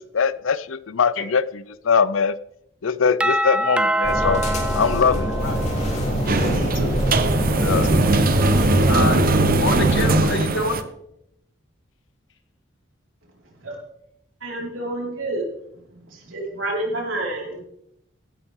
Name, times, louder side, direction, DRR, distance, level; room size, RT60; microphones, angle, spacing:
voice 1, 0.0-2.4 2.8-4.4 4.7-5.3 7.6-7.9, left 6 dB, 85° left, 17 dB, 0.6 m, -22 dB
Doorbell, 3.2-6.0, right 1 dB, 5° right, 0.4 m, -24 dB
sound 1, 4.0-10.2, equal, 35° left, 3.6 m, -25 dB
sound 2, 5.4-10.8, right 2 dB, 45° right, 0.9 m, -20 dB
voice 2, 6.3-7.0 7.6-8.4 8.9-10.8, left 2 dB, 65° left, 6 dB, 1.9 m, -28 dB
voice 3, 14.4-15.4 16.1-17.6, right 1 dB, 80° right, -2 dB, 4.8 m, -28 dB
15.5 x 12.0 x 3.7 m, 0.78 s
head